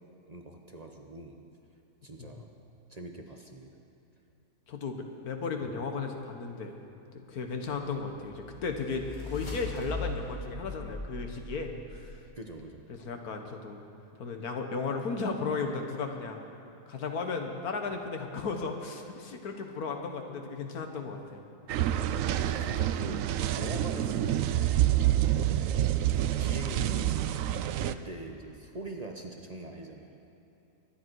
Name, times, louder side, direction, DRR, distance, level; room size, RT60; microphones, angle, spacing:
voice 1, 0.3-1.4 2.0-2.5 2.9-3.8 5.6-5.7 12.4-12.8 21.9-24.7 25.2-25.8 26.1-27.4 27.8-30.2, right 2 dB, 30° right, 2 dB, 1.0 m, -42 dB
voice 2, 4.7-6.8 7.1-12.2 12.9-13.8 14.2-16.5 16.9-21.4, left 4 dB, 90° left, 4 dB, 1.7 m, -35 dB
sound 1, 8.2-12.2, left 2 dB, 30° left, 2.5 m, -40 dB
sound 2, 21.7-27.9, right 12 dB, 70° right, 0.9 m, -27 dB
23.5 x 10.5 x 4.7 m, 2.9 s
omnidirectional pair, 1.5 m